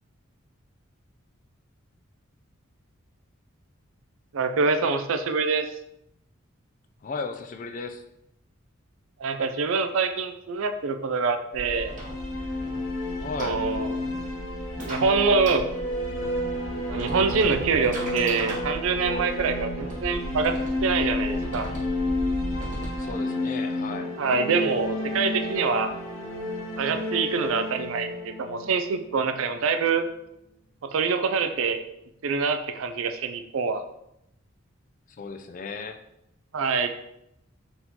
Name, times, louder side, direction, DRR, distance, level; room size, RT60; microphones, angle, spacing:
voice 1, 4.3-5.7 9.2-11.9 13.4-13.9 14.9-15.6 16.9-20.5 20.8-21.7 24.2-25.9 26.8-30.1 30.8-31.8 32.2-33.8 36.5-36.9, right 4 dB, 75° right, 8 dB, 0.4 m, -25 dB
voice 2, 7.0-8.0 13.2-13.6 23.0-24.1 35.1-36.0, left 4 dB, 40° left, 7 dB, 0.3 m, -35 dB
sound 1, 11.5-23.1, equal, 40° right, 1.0 m, -37 dB
sound 2, 11.6-29.5, left 1 dB, 75° left, 1.0 m, -31 dB
4.3 x 3.7 x 2.8 m, 0.82 s
head